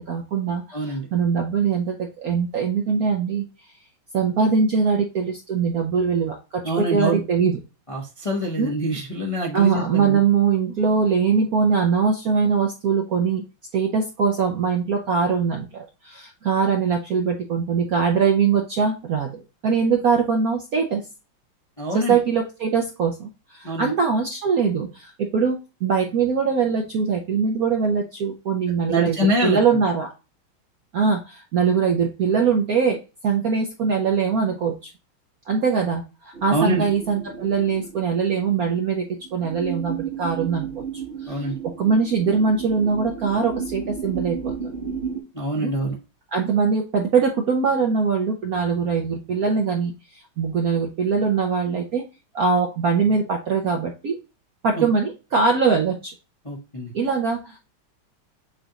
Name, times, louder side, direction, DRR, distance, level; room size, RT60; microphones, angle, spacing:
voice 1, 0.0-3.4 4.1-7.5 8.6-8.7 9.5-13.4 13.7-21.0 21.9-30.1 30.9-33.0 33.2-34.7 35.5-40.8 41.2-44.5 45.6-45.7 46.3-49.9 50.4-52.0 52.3-54.2 54.6-56.1 56.9-57.6, right 5 dB, 60° right, 2 dB, 0.9 m, -22 dB
voice 2, 0.7-1.1 6.6-7.2 7.9-10.2 21.8-22.2 23.6-23.9 28.9-29.6 36.5-36.8 41.3-41.6 45.3-46.0 54.8-54.9 56.4-56.9, right 1 dB, 25° left, -1 dB, 0.7 m, -25 dB
sound 1, 36.3-45.2, right 6 dB, 40° right, 1.1 m, -33 dB
7.1 x 2.5 x 2.8 m, 0.29 s
omnidirectional pair, 2.3 m